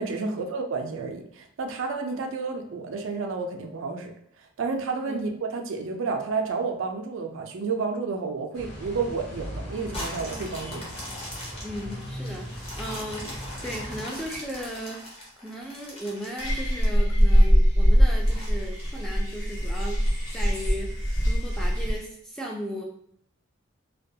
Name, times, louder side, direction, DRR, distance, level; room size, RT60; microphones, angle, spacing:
voice 1, 0.0-4.1 4.6-10.8, right 4 dB, 70° right, 3 dB, 0.4 m, -30 dB
sound 1, 8.5-14.0, equal, 50° left, 1.0 m, -38 dB
sound 2, 9.9-17.2 17.7-17.8 18.2-19.5 20.1-20.2, left 1 dB, 30° left, 0.7 m, -40 dB
voice 2, 11.6-15.0 15.4-20.0 20.3-22.8, equal, 5° left, -2 dB, 0.3 m, -36 dB
sound 3, 16.4-22.0, equal, 75° left, 1.0 m, -22 dB
2.2 x 2.1 x 2.7 m, 0.71 s
head